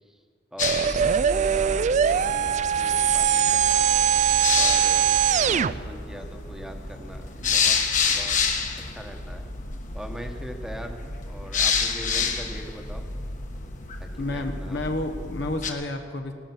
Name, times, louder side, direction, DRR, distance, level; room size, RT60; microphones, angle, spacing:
voice 1, 0.5-3.9 4.6-5.1 5.5-7.8 8.1-8.4 8.9-9.4 9.9-13.0 14.2-14.8, equal, 5° right, 4 dB, 1.2 m, -41 dB
sound 1, 0.6-15.7, left 5 dB, 45° left, 1.3 m, -29 dB
sound 2, 0.6-5.7, right 8 dB, 40° right, 0.4 m, -21 dB
voice 2, 14.2-16.3, left 2 dB, 65° left, 5 dB, 1.1 m, -30 dB
17.0 x 12.0 x 6.1 m, 2.1 s
head